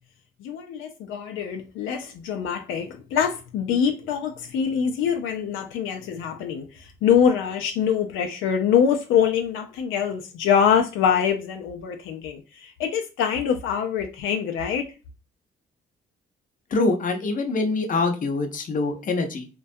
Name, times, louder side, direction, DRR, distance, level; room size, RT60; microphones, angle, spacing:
voice 1, 0.4-14.9, left 8 dB, 85° left, 0.4 m, -24 dB
voice 2, 16.7-19.5, left 3 dB, 45° left, 0.6 m, -24 dB
2.2 x 2.2 x 2.6 m
cardioid pair, 90°, 20 cm